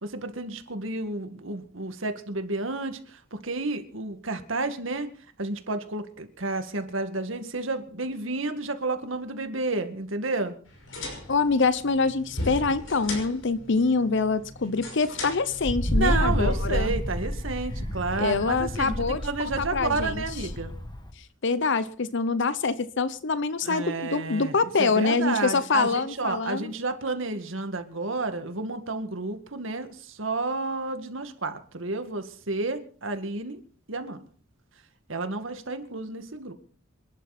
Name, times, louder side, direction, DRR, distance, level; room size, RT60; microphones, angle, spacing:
voice 1, 0.0-5.1 5.4-10.5 15.9-20.7 23.6-33.6 33.9-34.2 35.1-36.5, right 3 dB, 80° right, 8 dB, 2.1 m, -31 dB
sound 1, 10.7-16.6, left 2 dB, 85° left, 5.9 m, -38 dB
voice 2, 11.3-16.9 18.2-20.2 21.2-26.7, left 4 dB, 65° left, 15 dB, 0.8 m, -25 dB
Wind, 15.6-21.1, equal, 20° left, 2.0 m, -29 dB
27.0 x 11.5 x 4.3 m, 0.42 s
head